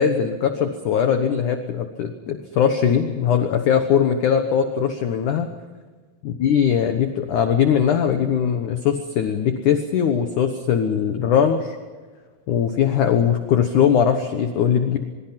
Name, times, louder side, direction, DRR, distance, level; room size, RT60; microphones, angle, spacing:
voice 1, 0.0-5.5 6.3-11.8 12.5-15.0, left 8 dB, 65° left, 7 dB, 2.0 m, -20 dB
24.0 x 23.0 x 5.9 m, 1.4 s
omnidirectional pair, 5.1 m